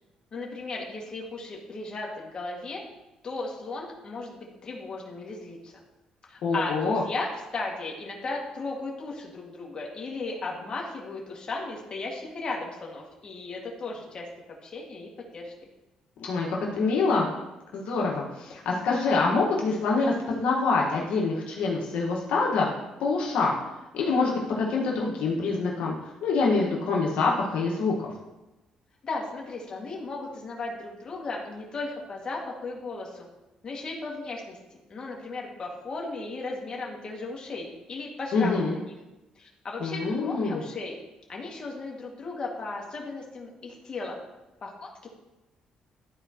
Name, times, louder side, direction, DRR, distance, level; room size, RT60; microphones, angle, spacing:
voice 1, 0.3-2.8 3.2-5.7 6.2-14.3 14.6-15.5 29.0-33.3 33.6-38.9 39.4-41.0 41.3-44.2 44.6-45.1, left 3 dB, 40° left, -2 dB, 2.0 m, -36 dB
voice 2, 6.4-7.0 16.2-17.3 17.7-22.7 23.0-23.6 23.9-25.9 26.2-28.1 38.3-38.7 39.8-40.6, left 4 dB, 80° left, -3 dB, 1.4 m, -25 dB
12.5 x 4.6 x 2.9 m, 1.0 s
cardioid pair, 95°, 2 cm